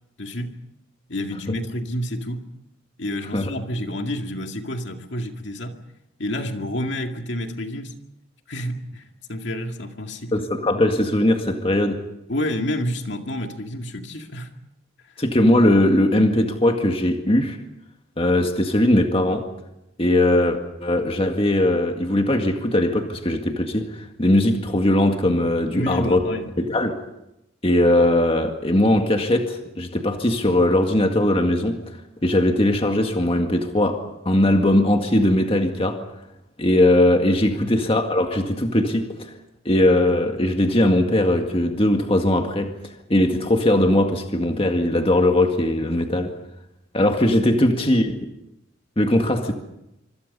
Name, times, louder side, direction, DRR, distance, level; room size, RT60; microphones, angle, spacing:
voice 1, 0.2-0.6 1.1-2.5 3.0-5.8 6.2-8.0 8.5-9.0 9.3-10.3 12.3-14.5 25.7-26.6 37.5-37.7 47.5-48.0, left 1 dB, 60° left, 2.3 m, -29 dB
voice 2, 10.3-12.0 15.2-17.6 18.2-19.5 20.0-26.2 26.6-27.0 27.6-31.8 32.2-36.0 36.6-39.3 39.7-46.3 46.9-48.1 49.0-49.5, left 1 dB, 30° left, 1.9 m, -20 dB
26.5 x 25.5 x 5.5 m
head